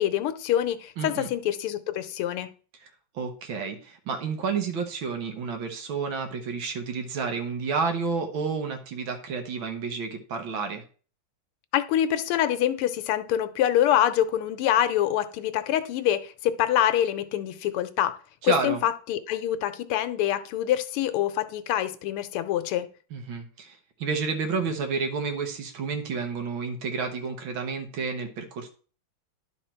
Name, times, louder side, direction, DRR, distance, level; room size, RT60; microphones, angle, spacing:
voice 1, 0.0-2.5 11.7-18.2 18.4-22.9, left 11 dB, 85° left, 1.6 m, -25 dB
voice 2, 1.0-1.3 3.1-10.8 18.4-18.8 23.1-28.7, right 5 dB, 65° right, 1.8 m, -30 dB
11.0 x 4.1 x 4.4 m
omnidirectional pair, 2.4 m